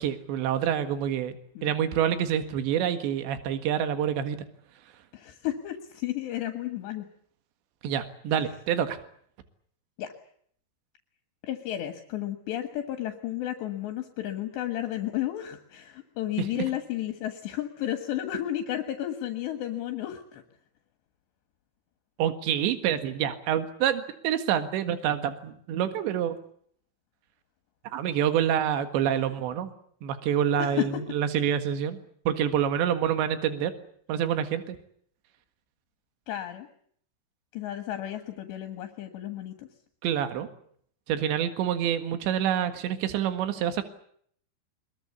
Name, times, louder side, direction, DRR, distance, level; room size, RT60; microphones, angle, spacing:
voice 1, 0.0-1.3 1.6-4.4 7.8-9.0 16.6-16.7 22.2-26.4 27.9-29.7 30.0-32.0 32.3-33.7 34.1-34.8 40.0-40.5 41.1-43.8, right 9 dB, 75° right, 9 dB, 3.9 m, -27 dB
voice 2, 5.1-7.1 10.0-10.1 11.4-20.4 30.6-31.0 36.3-36.7 37.5-39.7, left 12 dB, 75° left, 7 dB, 3.7 m, -32 dB
23.5 x 22.0 x 8.4 m, 0.64 s
omnidirectional pair, 5.2 m